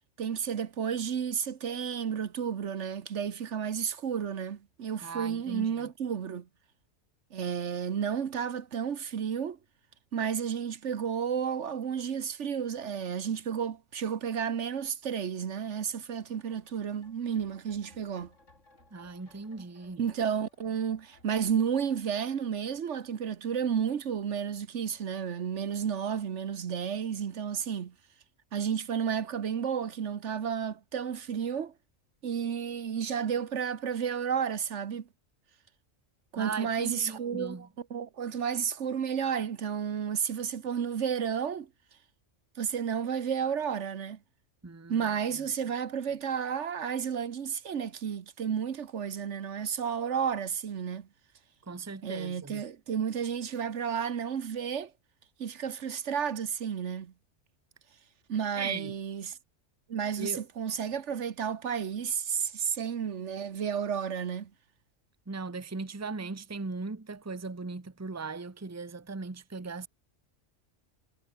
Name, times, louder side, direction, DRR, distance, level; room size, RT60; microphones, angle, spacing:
voice 1, 0.2-6.5 7.3-9.6 10.1-18.3 20.0-27.9 28.5-31.7 32.2-35.1 36.3-41.7 42.6-44.2 44.9-51.1 52.0-54.9 55.4-57.1 58.3-59.4 59.9-64.5, right 7 dB, 70° right, 1.4 m, -32 dB
voice 2, 5.0-5.9 18.9-20.0 36.4-37.7 44.6-45.1 51.6-52.6 58.5-59.0 60.2-60.4 65.3-69.9, right 4 dB, 15° right, 0.9 m, -38 dB
sound 1, 16.2-23.6 23.8-23.9, left 2 dB, 80° left, 5.4 m, -63 dB
omnidirectional pair, 1.2 m